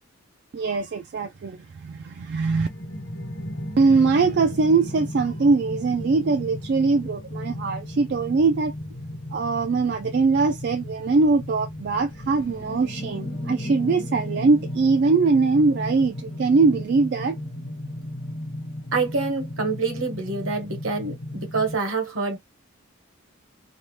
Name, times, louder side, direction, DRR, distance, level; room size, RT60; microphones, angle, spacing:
voice 1, 0.5-2.7 3.8-8.7 9.3-17.4, right 4 dB, 50° right, 0.3 m, -22 dB
somewhere under the sea, 2.5-21.8, left 1 dB, 60° left, 1.0 m, -35 dB
voice 2, 18.9-22.4, right 4 dB, 70° right, 1.2 m, -26 dB
2.8 x 2.1 x 3.1 m
head